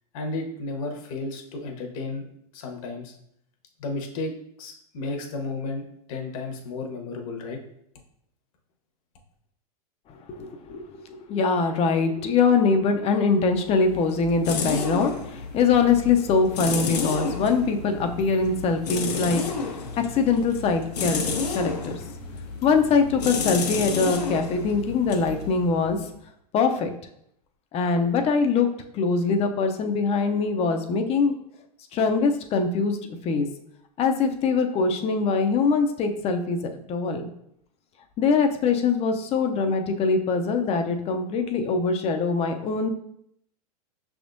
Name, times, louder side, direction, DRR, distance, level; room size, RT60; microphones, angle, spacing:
voice 1, 0.1-2.3 2.5-3.1 3.8-4.3 4.6-7.6, left 3 dB, 60° left, 3 dB, 1.0 m, -33 dB
voice 2, 10.1-19.4 19.7-22.0 22.6-26.0 26.5-26.9 27.7-28.7 28.9-31.4 31.9-33.0 33.2-33.5 34.0-37.2 38.2-42.9, left 4 dB, 30° left, 6 dB, 0.5 m, -23 dB
sound 1, 13.5-26.2, left 4 dB, 90° left, 0.9 m, -31 dB
5.8 x 3.5 x 2.6 m, 0.72 s
hypercardioid pair, 115°, 20 cm